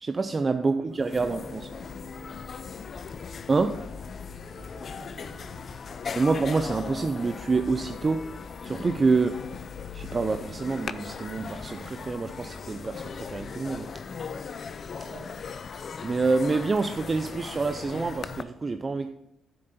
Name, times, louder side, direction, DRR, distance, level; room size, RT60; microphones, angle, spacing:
voice 1, 0.0-1.6 3.5-3.9 6.2-8.3 8.6-9.4 9.9-13.9 16.0-19.1, right 4 dB, 30° right, 0.5 m, -27 dB
voice 2, 0.6-2.4 4.6-6.0 14.3-14.5 15.0-15.4, right 3 dB, 55° right, 1.9 m, -50 dB
sound 1, 0.7-0.8 1.0-18.4, left 5 dB, 45° left, 0.5 m, -38 dB
10.0 x 7.8 x 4.2 m
cardioid pair, 90°, 0 cm